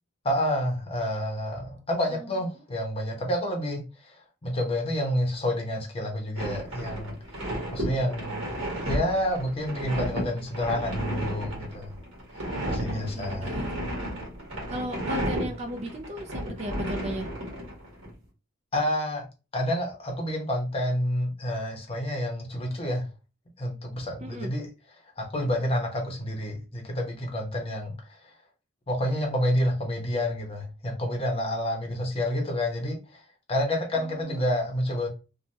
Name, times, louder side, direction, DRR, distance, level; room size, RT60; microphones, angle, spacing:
voice 1, 0.2-3.8 4.4-7.1 7.7-8.6 8.9-11.9 12.7-13.6 18.7-19.3 19.5-23.1 23.6-24.7 25.2-28.2 28.9-33.2 33.5-35.1, left 1 dB, 30° left, 0.7 m, -29 dB
voice 2, 2.1-2.4 8.4-8.9 12.8-13.8 14.7-17.3 24.2-24.5 34.0-34.4, equal, 30° right, 0.4 m, -37 dB
sound 1, 6.4-18.1, equal, 65° right, 1.4 m, -33 dB
3.2 x 2.2 x 2.6 m
head